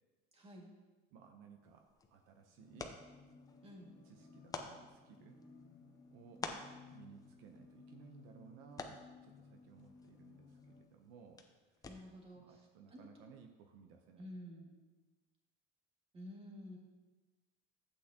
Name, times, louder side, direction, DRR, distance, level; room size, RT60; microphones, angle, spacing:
voice 1, 0.3-0.7 3.6-3.9 11.9-12.6 12.9-13.0 14.2-14.8 16.1-16.8, equal, 30° right, -1 dB, 2.0 m, -51 dB
voice 2, 1.1-2.9 4.0-5.4 6.1-6.5 6.9-11.4 11.7-11.9 12.4-14.3, right 7 dB, 75° right, 4 dB, 0.8 m, -59 dB
sound 1, 1.6-12.3, left 4 dB, 15° left, 0.7 m, -52 dB
sound 2, 2.6-10.8, left 4 dB, 60° left, 1.8 m, -59 dB
12.0 x 8.4 x 2.9 m, 1.3 s
cardioid pair, 135°, 21 cm